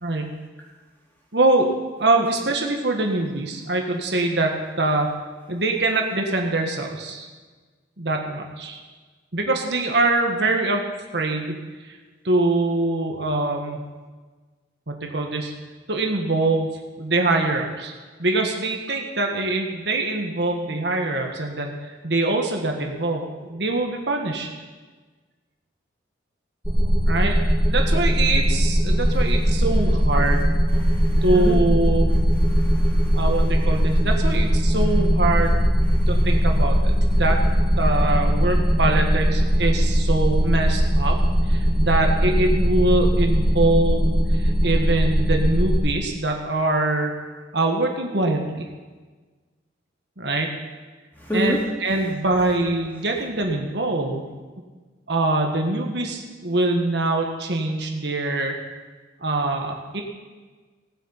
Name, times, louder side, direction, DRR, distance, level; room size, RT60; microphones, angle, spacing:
voice 1, 0.0-0.3 1.3-1.7 2.0-5.1 5.5-7.3 8.0-8.8 9.3-10.9 11.1-11.6 11.8-12.0 12.2-13.8 14.9-15.5 15.9-16.7 17.0-17.9 18.2-24.5 27.1-27.4 27.7-30.5 31.2-32.1 33.1-35.6 36.1-36.8 37.2-37.4 37.8-41.2 41.4-47.2 47.5-48.7 50.2-50.5 51.3-54.3 55.1-58.5 59.2-60.0, right 2 dB, 65° right, 2 dB, 1.5 m, -23 dB
sound 1, 26.6-45.8, equal, 10° right, 3.4 m, -20 dB
voice 2, 30.8-31.6 32.5-33.2 35.9-36.1 51.2-51.6, equal, 10° left, -4 dB, 3.0 m, -29 dB
18.0 x 7.8 x 5.7 m, 1.3 s
head